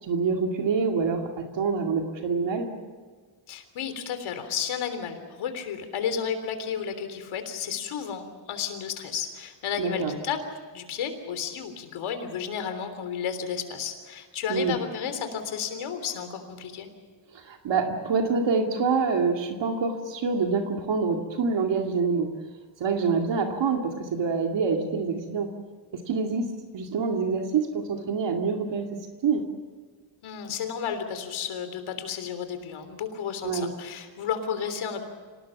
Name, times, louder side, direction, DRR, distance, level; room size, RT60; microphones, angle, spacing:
voice 1, 0.0-2.7 9.8-10.2 14.5-14.8 17.3-22.3 22.8-25.5 25.9-28.9 29.2-29.4 33.4-33.7, right 5 dB, 65° right, 3 dB, 2.4 m, -26 dB
voice 2, 3.5-10.4 10.7-16.9 30.2-35.0, left 7 dB, 85° left, 8 dB, 3.5 m, -32 dB
26.5 x 18.5 x 7.2 m, 1.5 s
cardioid pair, 135°, 47 cm